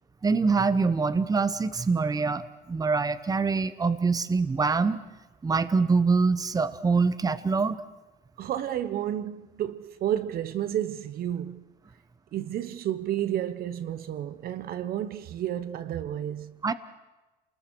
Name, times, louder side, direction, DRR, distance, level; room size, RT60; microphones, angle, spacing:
voice 1, 0.2-5.0 5.4-7.8 16.6-16.7, right 4 dB, 20° right, 1.1 m, -24 dB
voice 2, 8.4-11.6 12.3-16.5, right 11 dB, 60° right, 1.1 m, -31 dB
28.0 x 20.5 x 6.3 m
cardioid pair, 110°, 17 cm